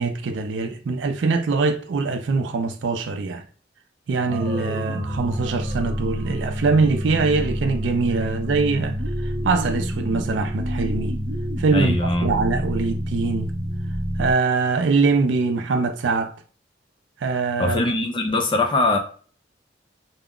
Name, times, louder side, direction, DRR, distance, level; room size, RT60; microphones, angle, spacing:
voice 1, 0.0-3.4 4.1-9.0 9.2-11.1 11.6-13.5 14.2-16.3 17.2-17.8, right 4 dB, 90° right, 0.4 m, -23 dB
sound 1, 4.3-14.3, equal, 35° right, 0.5 m, -27 dB
voice 2, 11.7-12.3 17.6-19.0, left 2 dB, 25° left, 0.5 m, -22 dB
2.3 x 2.0 x 3.5 m
head